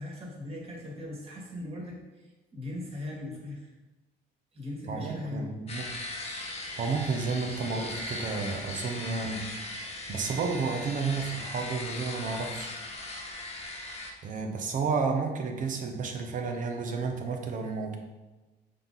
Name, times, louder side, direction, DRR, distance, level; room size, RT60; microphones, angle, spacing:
voice 1, 0.0-3.7 4.5-5.5, left 1 dB, 35° right, -3 dB, 2.1 m, -39 dB
voice 2, 4.9-5.9 6.8-9.8 10.1-12.7 14.2-18.0, right 4 dB, 50° right, 4 dB, 1.0 m, -31 dB
sound 1, 5.7-14.1, left 2 dB, 40° left, 1.1 m, -39 dB
6.6 x 3.9 x 4.1 m, 1.1 s
cardioid pair, 110°, 17 cm